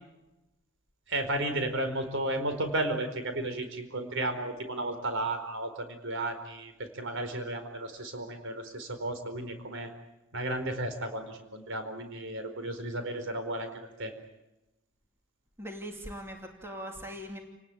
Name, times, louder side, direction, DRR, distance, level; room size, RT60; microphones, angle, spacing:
voice 1, 1.1-9.9 10.3-14.1, right 1 dB, 65° right, 8 dB, 4.6 m, -33 dB
voice 2, 15.6-17.4, equal, 10° right, 2 dB, 2.8 m, -40 dB
29.5 x 19.5 x 9.2 m, 0.96 s
head